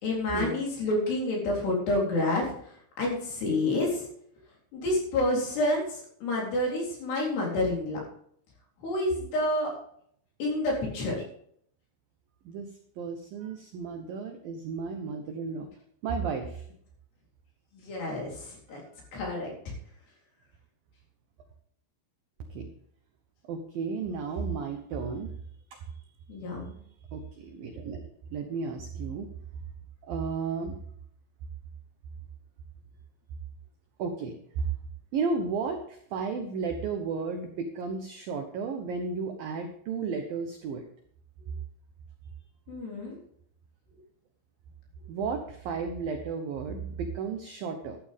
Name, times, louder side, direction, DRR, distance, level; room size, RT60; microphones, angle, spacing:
voice 1, 0.0-2.5 3.0-4.0 4.7-8.0 8.8-9.7 10.4-11.2 17.7-18.8 19.1-19.5 26.3-26.8 42.7-43.2, left 1 dB, 60° left, -2 dB, 5.8 m, -28 dB
voice 2, 13.0-15.7 16.0-16.7 22.4-22.7 23.5-25.3 25.7-26.0 27.1-28.0 28.3-29.3 30.0-30.8 34.0-34.7 35.1-40.8 45.1-48.0, right 5 dB, 75° right, 5 dB, 2.1 m, -33 dB
13.0 x 12.5 x 3.6 m, 0.65 s
omnidirectional pair, 5.7 m